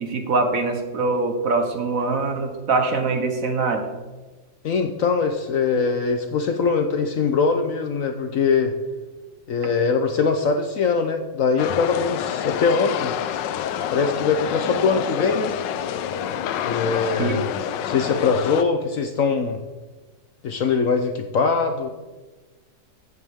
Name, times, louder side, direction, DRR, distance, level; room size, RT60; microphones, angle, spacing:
voice 1, 0.0-3.8 17.2-17.4, right 3 dB, 55° right, 5 dB, 1.4 m, -23 dB
voice 2, 4.6-8.7 9.5-13.1 13.9-15.5 16.6-19.6 20.4-21.9, left 5 dB, 60° left, 6 dB, 1.0 m, -22 dB
sound 1, 11.6-18.6, left 10 dB, 85° left, 1.3 m, -27 dB
14.5 x 8.2 x 3.6 m, 1.2 s
omnidirectional pair, 1.9 m